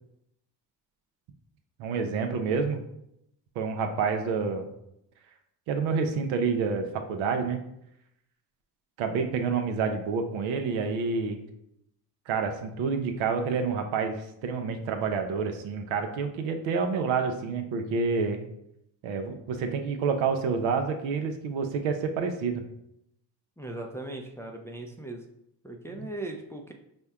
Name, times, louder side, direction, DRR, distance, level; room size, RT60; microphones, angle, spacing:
voice 1, 1.8-2.8 3.6-4.7 5.7-7.6 9.0-11.5 12.3-18.5 19.0-22.6, right 5 dB, 80° right, 6 dB, 0.7 m, -28 dB
voice 2, 23.6-25.2 25.6-26.7, right 2 dB, 5° left, 2 dB, 0.4 m, -38 dB
4.3 x 2.2 x 3.5 m, 0.78 s
supercardioid pair, 60°, 48 cm